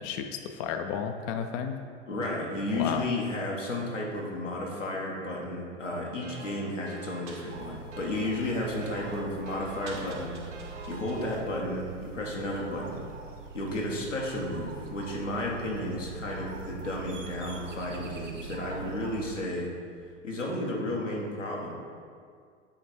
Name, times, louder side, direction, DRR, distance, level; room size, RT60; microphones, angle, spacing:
voice 1, 0.0-1.8 2.7-3.1, left 7 dB, 35° left, 6 dB, 0.4 m, -32 dB
voice 2, 2.1-13.0 13.5-19.7 20.2-21.7, left 1 dB, 85° left, -2 dB, 1.2 m, -33 dB
sound 1, 6.2-11.4, right 4 dB, 70° right, 1.0 m, -44 dB
sound 2, 7.5-19.4, right 4 dB, 90° right, 0.6 m, -43 dB
8.4 x 3.4 x 4.2 m, 2.1 s
figure-of-eight pair, 85°, 36 cm